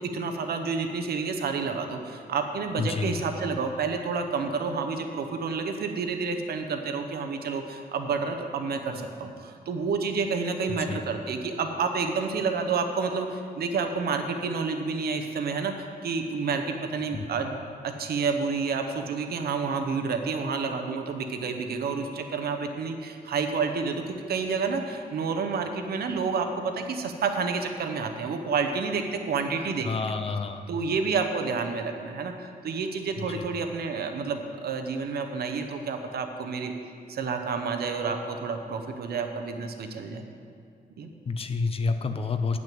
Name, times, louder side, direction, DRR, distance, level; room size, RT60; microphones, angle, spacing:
voice 1, 0.0-30.1 30.7-36.7 37.1-40.2 41.0-41.1, right 5 dB, 80° right, 5 dB, 0.9 m, -29 dB
voice 2, 2.8-3.2 10.9-11.0 17.1-17.3 29.6-30.6 33.2-33.5 41.3-42.6, left 4 dB, 35° left, 8 dB, 0.5 m, -29 dB
8.9 x 6.1 x 7.7 m, 2.3 s
wide cardioid pair, 180°, 16 cm